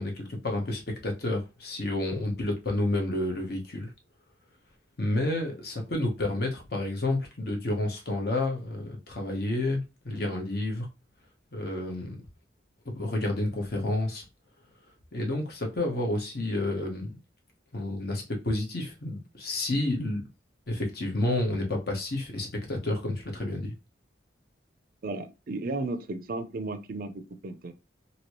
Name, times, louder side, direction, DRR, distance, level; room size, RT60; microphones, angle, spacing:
voice 1, 0.0-3.9 5.0-10.9 11.5-12.2 12.8-14.2 15.1-17.1 17.7-20.2 20.7-23.7, left 1 dB, 55° left, 1.0 m, -30 dB
voice 2, 25.0-27.7, right 2 dB, 50° right, 0.4 m, -34 dB
3.0 x 2.8 x 3.0 m
head